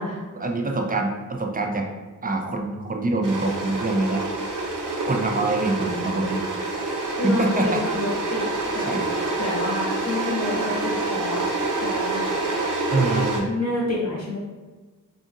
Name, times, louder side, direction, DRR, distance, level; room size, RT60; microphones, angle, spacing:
voice 1, 0.4-1.9 2.2-4.2 5.1-6.7 7.2-8.1 8.9-9.1 12.9-13.5, right 2 dB, 25° right, 3 dB, 0.4 m, -25 dB
sound 1, 3.2-13.4, right 2 dB, 65° right, 0.7 m, -27 dB
voice 2, 7.2-8.4 8.7-8.9 9.4-11.4 11.8-12.6 13.4-14.4, left 1 dB, 55° left, -5 dB, 0.8 m, -28 dB
2.7 x 2.7 x 2.5 m, 1.3 s
cardioid pair, 50°, 34 cm